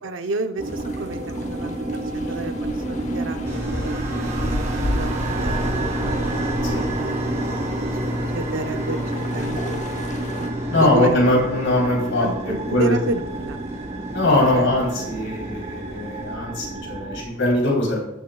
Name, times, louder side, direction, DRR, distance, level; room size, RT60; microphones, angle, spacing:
voice 1, 0.0-6.3 6.9-7.7 8.3-10.1 10.8-11.2 12.2-13.6 14.5-14.7, right 2 dB, 80° right, 7 dB, 0.7 m, -31 dB
sound 1, 0.6-10.5, left 1 dB, 35° left, 0.9 m, -33 dB
sound 2, 0.6-17.2, right 2 dB, 35° right, 1.0 m, -29 dB
sound 3, 3.4-16.3, left 1 dB, 15° right, 1.3 m, -34 dB
voice 2, 10.7-12.9 14.1-18.0, left 1 dB, 80° left, -2 dB, 3.7 m, -21 dB
15.0 x 7.1 x 2.3 m, 0.86 s
head